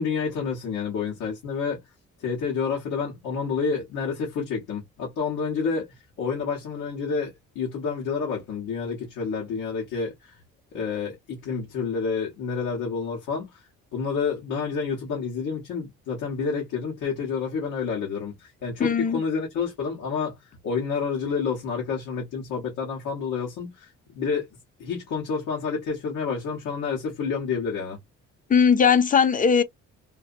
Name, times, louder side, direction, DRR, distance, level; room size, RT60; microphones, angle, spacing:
voice 1, 0.0-1.8 2.2-10.4 10.7-13.6 13.9-20.4 20.6-24.5 24.8-28.0, left 5 dB, 85° left, 1.1 m, -29 dB
voice 2, 18.8-19.2 28.5-29.6, left 6 dB, 30° left, 0.5 m, -19 dB
2.6 x 2.5 x 2.5 m
cardioid pair, 90°, 30 cm